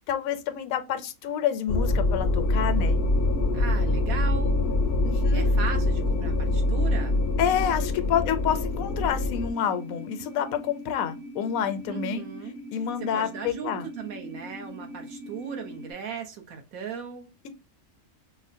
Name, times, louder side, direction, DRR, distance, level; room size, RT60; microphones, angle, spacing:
voice 1, 0.1-3.0 5.0-5.5 7.4-12.2 12.7-13.9, left 9 dB, 80° left, 1.0 m, -28 dB
sound 1, 1.7-9.5, left 2 dB, 65° left, 0.7 m, -24 dB
sound 2, 2.4-15.9, equal, 60° right, 1.2 m, -41 dB
voice 2, 3.5-4.6 5.1-7.2 11.9-12.6 13.1-17.3, right 7 dB, 75° right, 1.4 m, -37 dB
4.8 x 2.1 x 2.6 m
omnidirectional pair, 1.5 m